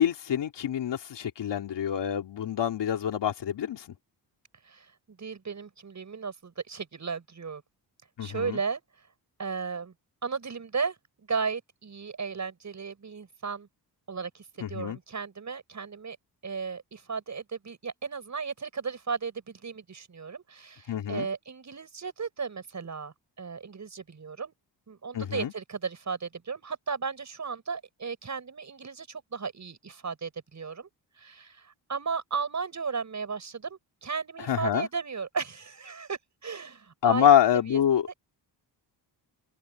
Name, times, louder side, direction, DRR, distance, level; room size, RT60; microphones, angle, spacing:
voice 1, 0.0-3.8 8.2-8.6 14.6-15.0 20.9-21.3 25.1-25.5 34.5-34.9 37.0-38.1, left 10 dB, 75° left, 3.2 m, -25 dB
voice 2, 4.6-7.6 8.2-8.8 9.4-9.9 10.2-13.7 14.1-16.2 16.4-24.5 24.9-30.9 31.2-37.3 37.7-38.0, right 5 dB, 40° right, 7.6 m, -35 dB
cardioid pair, 110°, 42 cm